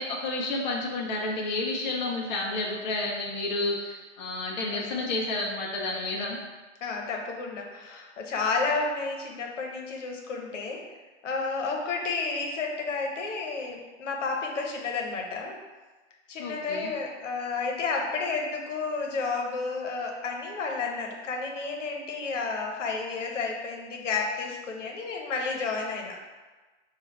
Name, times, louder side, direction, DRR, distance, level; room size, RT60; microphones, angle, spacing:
voice 1, 0.0-6.4 16.4-16.9, left 2 dB, 40° left, -2 dB, 0.5 m, -30 dB
voice 2, 6.8-10.8 11.2-15.5 16.3-26.2, left 4 dB, 75° left, 1 dB, 0.9 m, -31 dB
5.4 x 2.4 x 3.1 m, 1.3 s
hypercardioid pair, 150°, 37 cm